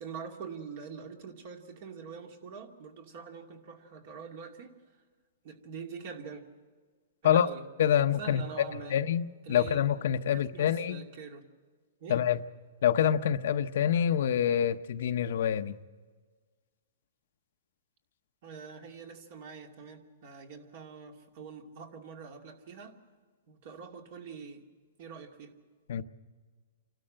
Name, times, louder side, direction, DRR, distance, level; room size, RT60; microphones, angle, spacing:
voice 1, 0.0-4.7 5.4-6.4 7.2-9.0 9.5-10.0 10.3-11.5 12.0-12.2 18.4-23.0 23.5-24.6 25.0-25.5, right 5 dB, 50° right, 2.5 m, -44 dB
voice 2, 7.8-11.0 12.1-12.4 12.8-15.8 25.9-26.0, left 9 dB, 65° left, 0.8 m, -26 dB
28.0 x 13.0 x 7.7 m
hypercardioid pair, 155°, 0 cm